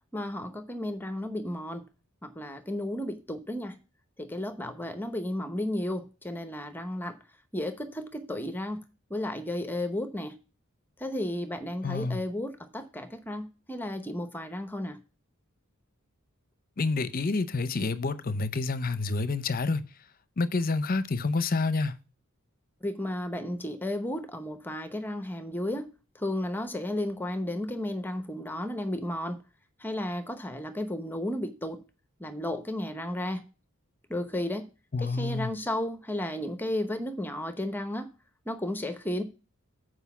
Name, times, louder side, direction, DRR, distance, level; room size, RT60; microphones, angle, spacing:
voice 1, 0.1-1.8 2.2-3.8 4.2-7.2 7.5-8.8 9.1-10.4 11.0-15.0 22.8-25.9 26.1-29.4 29.8-31.8 32.2-33.5 34.1-34.7 35.0-38.1 38.5-39.2, left 1 dB, 10° left, 0.8 m, -33 dB
voice 2, 11.8-12.2 16.8-19.8 20.4-21.9 34.9-35.6, left 3 dB, 40° left, 0.7 m, -28 dB
8.1 x 5.0 x 7.0 m
head